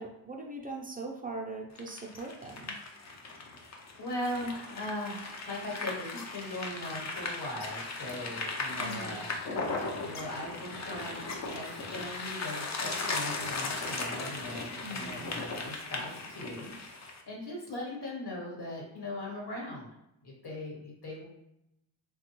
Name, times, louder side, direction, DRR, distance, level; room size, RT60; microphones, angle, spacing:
voice 1, 0.0-2.7 8.8-9.2 14.8-15.3, right 2 dB, 20° right, 0 dB, 0.4 m, -41 dB
sound 1, 1.8-17.2, left 3 dB, 40° left, 0.5 m, -37 dB
voice 2, 3.6-9.3 9.6-19.9 20.2-21.2, left 1 dB, 60° left, -2 dB, 1.2 m, -40 dB
3.1 x 2.2 x 3.0 m, 0.84 s
wide cardioid pair, 115°, 46 cm